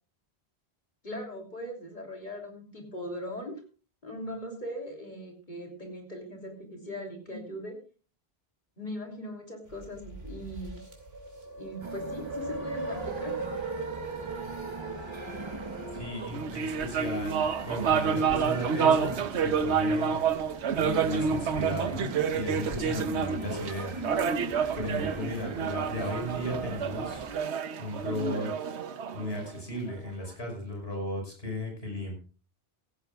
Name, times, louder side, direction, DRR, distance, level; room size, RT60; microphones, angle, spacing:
voice 1, 1.0-3.6 4.0-7.8 8.8-10.8 11.6-13.3, left 1 dB, 45° left, 1 dB, 3.2 m, -39 dB
sound 1, 9.7-16.3, right 3 dB, 65° right, 3.1 m, -38 dB
sound 2, 11.8-27.4, right 3 dB, 30° right, 0.8 m, -42 dB
voice 2, 15.9-20.2 20.7-22.1 22.3-24.0 24.8-27.3 27.8-28.5 29.1-32.1, left 1 dB, 65° left, 1 dB, 5.8 m, -35 dB
sound 3, 16.2-29.9, right 6 dB, 90° right, 1.1 m, -29 dB
16.0 x 16.0 x 2.4 m, 0.37 s
omnidirectional pair, 1.1 m